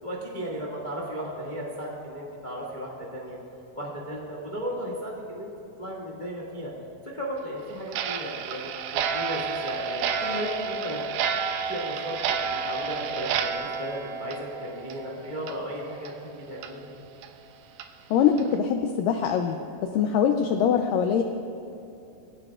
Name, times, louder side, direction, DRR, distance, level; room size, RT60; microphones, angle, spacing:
voice 1, 0.0-3.4 3.7-6.7 7.0-11.1 11.7-16.9, equal, 30° left, -3 dB, 0.8 m, -35 dB
Clock, 7.9-15.1 15.4-15.6 16.0-16.1 16.6-16.7 17.2-17.3 17.8-17.9 18.4-18.6, right 6 dB, 80° right, 2.4 m, -30 dB
voice 2, 18.1-19.6 19.8-21.2, left 7 dB, 80° left, 5 dB, 2.0 m, -23 dB
22.5 x 16.5 x 2.4 m, 2.8 s
omnidirectional pair, 4.5 m